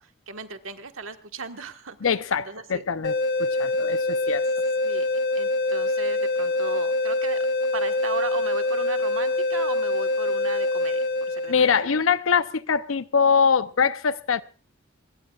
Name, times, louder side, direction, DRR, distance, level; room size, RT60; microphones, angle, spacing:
voice 1, 0.0-2.0 2.4-2.8 4.8-5.1 5.3-7.4 7.7-11.8, right 4 dB, 80° right, 1.5 m, -36 dB
voice 2, 2.0-4.4 11.5-14.4, left 6 dB, 90° left, 0.7 m, -23 dB
sound 1, 3.0-12.0, left 2 dB, 55° left, 1.1 m, -25 dB
25.0 x 21.5 x 2.4 m
head